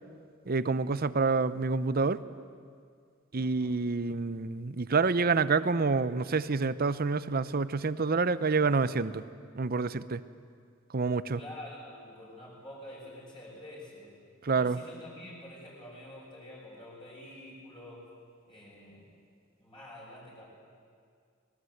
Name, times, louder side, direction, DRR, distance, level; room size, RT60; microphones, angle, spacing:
voice 1, 0.5-2.2 3.3-9.2 9.5-10.2 10.9-11.4 14.4-14.8, right 4 dB, 50° right, 15 dB, 0.7 m, -28 dB
voice 2, 3.4-3.8 11.3-14.1 14.5-18.1 18.5-19.1 19.6-20.4, left 1 dB, 25° left, -5 dB, 6.6 m, -47 dB
25.0 x 20.5 x 8.0 m, 2.2 s
head